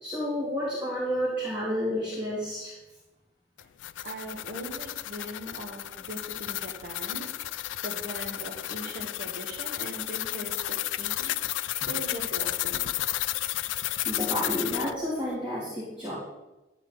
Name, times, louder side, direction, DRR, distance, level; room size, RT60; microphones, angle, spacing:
voice 1, 0.0-2.7 13.7-16.2, equal, 5° right, -10 dB, 2.9 m, -31 dB
sound 1, 3.6-14.9, left 14 dB, 90° left, 0.3 m, -32 dB
voice 2, 4.0-7.3 7.8-12.9, right 1 dB, 50° right, -2 dB, 1.5 m, -40 dB
12.0 x 4.1 x 8.0 m, 1.0 s
head